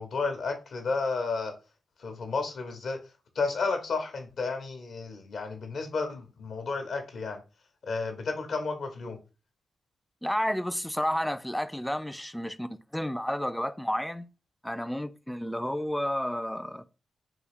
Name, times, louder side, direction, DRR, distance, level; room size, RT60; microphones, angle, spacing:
voice 1, 0.0-1.5 2.0-3.0 3.3-7.4 7.8-9.2, left 4 dB, 75° left, 0.8 m, -32 dB
voice 2, 10.2-14.3 14.6-16.9, equal, 5° left, 0.3 m, -31 dB
3.6 x 2.4 x 3.4 m
supercardioid pair, 45°, 0 cm